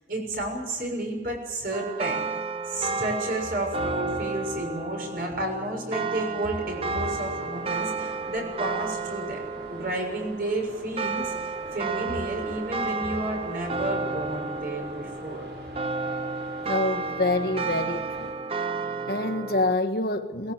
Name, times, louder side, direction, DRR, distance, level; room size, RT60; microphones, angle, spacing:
voice 1, 0.1-2.3 2.7-11.3 11.7-15.5, right 1 dB, 50° right, 6.9 m, -31 dB
sound 1, 1.7-19.8, right 4 dB, 30° right, 0.8 m, -32 dB
sound 2, 6.5-18.3, right 1 dB, 80° right, 6.8 m, -45 dB
voice 2, 16.6-18.3 19.1-20.5, left 2 dB, 55° left, 1.6 m, -26 dB
22.5 x 20.5 x 8.1 m
head